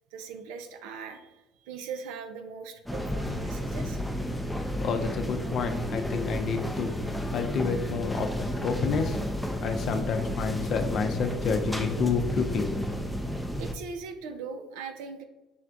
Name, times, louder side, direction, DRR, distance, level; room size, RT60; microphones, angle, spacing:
voice 1, 0.1-4.0 13.6-15.2, right 5 dB, 70° right, 7 dB, 0.5 m, -40 dB
sound 1, 2.9-13.7, equal, ahead, 0.5 m, -32 dB
voice 2, 4.6-13.0, left 5 dB, 50° left, 7 dB, 0.5 m, -30 dB
5.6 x 3.3 x 2.5 m, 1.1 s
hypercardioid pair, 60°, 0 cm